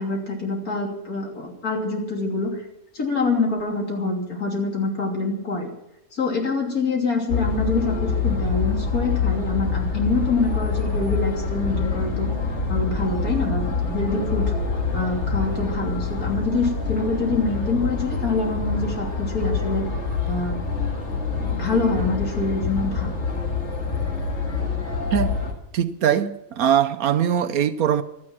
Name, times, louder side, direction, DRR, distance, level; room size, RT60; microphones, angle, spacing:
voice 1, 0.0-2.6 2.9-5.7 6.1-12.3 12.7-14.5 14.9-19.9 20.3-20.6 21.3-23.2, left 3 dB, 65° left, 3.5 m, -25 dB
sound 1, 7.3-25.5, left 4 dB, 45° left, 2.2 m, -26 dB
voice 2, 25.7-28.0, right 9 dB, 70° right, 1.2 m, -21 dB
16.0 x 12.0 x 6.0 m
omnidirectional pair, 1.6 m